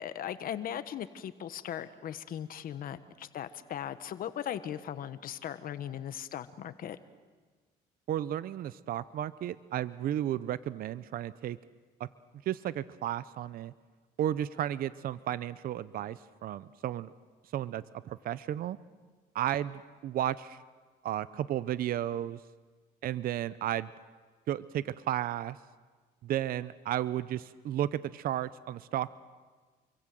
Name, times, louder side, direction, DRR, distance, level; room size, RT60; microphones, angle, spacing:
voice 1, 0.0-7.0, left 10 dB, 55° left, 12 dB, 1.3 m, -38 dB
voice 2, 8.1-11.6 12.0-12.1 12.5-13.7 14.2-17.1 17.5-18.8 19.3-20.6 21.0-22.4 23.0-23.9 24.5-25.6 26.2-29.1, right 12 dB, 60° right, 16 dB, 0.7 m, -33 dB
28.5 x 23.0 x 7.8 m, 1.4 s
cardioid pair, 110°, 17 cm